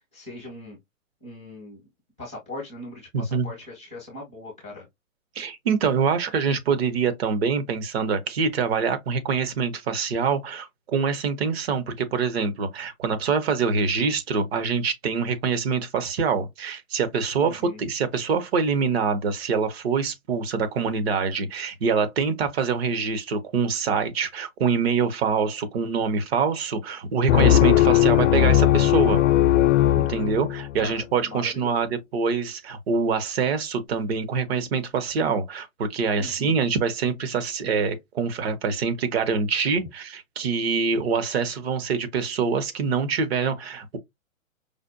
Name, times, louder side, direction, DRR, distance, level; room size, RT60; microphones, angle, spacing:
voice 1, 0.1-0.8 1.2-1.9 2.2-4.9 17.4-17.8 30.8-31.9 36.2-36.6, left 1 dB, 5° right, 0.3 m, -40 dB
voice 2, 3.1-3.5 5.4-29.2 30.0-44.0, right 5 dB, 50° right, 0.8 m, -25 dB
sound 1, 27.3-30.9, left 12 dB, 60° left, 0.5 m, -18 dB
5.0 x 2.2 x 2.6 m
hypercardioid pair, 135°, 41 cm